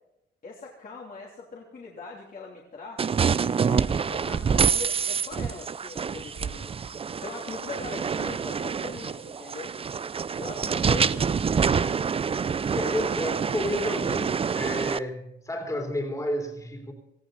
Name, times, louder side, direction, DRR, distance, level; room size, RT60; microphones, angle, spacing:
voice 1, 0.4-3.1 3.6-6.7 7.2-9.7 10.3-11.4 11.7-11.9 12.8-13.0, left 4 dB, 45° left, -3 dB, 3.1 m, -41 dB
sound 1, 3.0-15.0, right 6 dB, 30° right, 0.5 m, -27 dB
voice 2, 12.7-16.9, left 1 dB, 15° left, 2 dB, 3.4 m, -31 dB
18.5 x 14.5 x 4.1 m, 0.84 s
cardioid pair, 90°, 20 cm